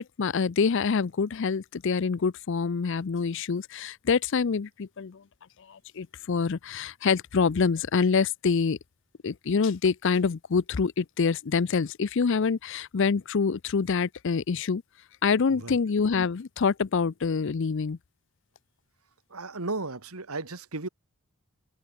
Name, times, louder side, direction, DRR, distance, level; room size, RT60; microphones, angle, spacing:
voice 1, 0.0-5.2 5.7-8.8 9.2-14.8 15.2-18.0, left 5 dB, 55° left, 0.5 m, -26 dB
voice 2, 19.3-20.9, right 3 dB, 80° right, 2.1 m, -35 dB
head